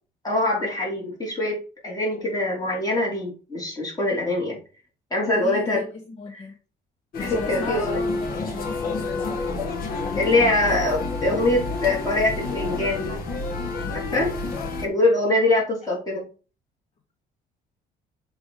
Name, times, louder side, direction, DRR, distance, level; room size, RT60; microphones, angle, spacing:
voice 1, 0.2-4.6 5.1-5.8 6.3-6.4 7.2-8.0 10.2-13.2 13.9-14.3 14.8-16.2, left 2 dB, 20° left, -3 dB, 3.9 m, -23 dB
voice 2, 5.3-6.6 7.2-10.4, left 3 dB, 40° left, 3 dB, 1.2 m, -36 dB
sound 1, 7.1-14.9, left 3 dB, 55° left, 1.7 m, -29 dB
7.0 x 3.6 x 4.8 m, 0.35 s
cardioid pair, 110°, 17 cm